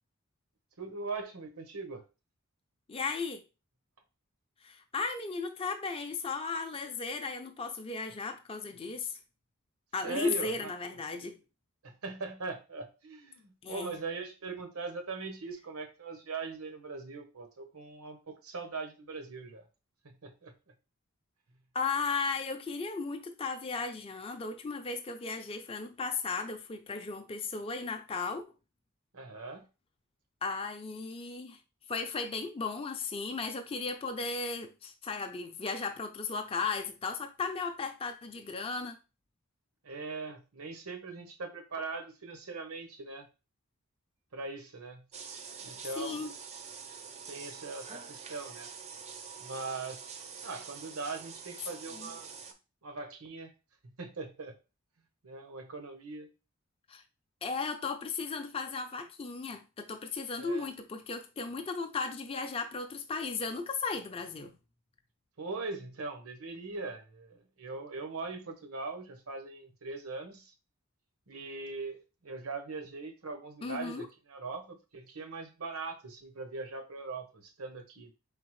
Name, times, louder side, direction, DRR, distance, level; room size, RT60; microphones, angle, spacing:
voice 1, 0.8-2.0 10.0-11.3 11.8-19.7 20.0-20.5 29.1-29.6 39.8-43.3 44.3-45.0 45.6-46.3 47.3-48.7 49.4-50.2 50.4-52.3 52.8-53.5 53.8-54.5 55.2-56.3 60.4-60.7 65.4-70.5 71.3-78.1, right 3 dB, 85° right, 1.0 m, -41 dB
voice 2, 2.9-3.4 4.6-9.2 9.9-11.4 13.6-14.0 21.7-28.4 30.4-31.6 31.9-39.0 46.0-46.3 52.0-52.1 56.9-57.0 57.4-64.5 73.6-74.1, left 4 dB, 25° left, 0.4 m, -35 dB
sound 1, 45.1-52.5, right 6 dB, 30° right, 0.5 m, -46 dB
4.0 x 3.6 x 3.1 m
head